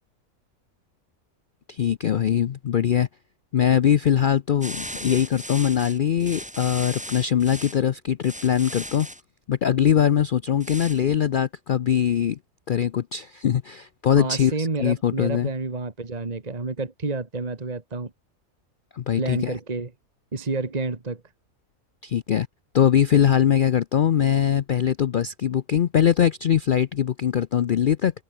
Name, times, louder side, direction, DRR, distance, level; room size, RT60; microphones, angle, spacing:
voice 1, 1.7-3.1 3.5-9.1 9.5-12.4 12.7-15.5 18.9-19.6 22.0-22.5 22.7-28.1, left 9 dB, 70° left, 0.4 m, -22 dB
sound 1, 4.6-7.8 8.2-9.2 10.6-11.0, equal, 5° right, 2.8 m, -37 dB
voice 2, 14.1-18.1 19.2-19.9 20.3-21.2, right 3 dB, 30° right, 1.7 m, -29 dB
omnidirectional pair, 1.5 m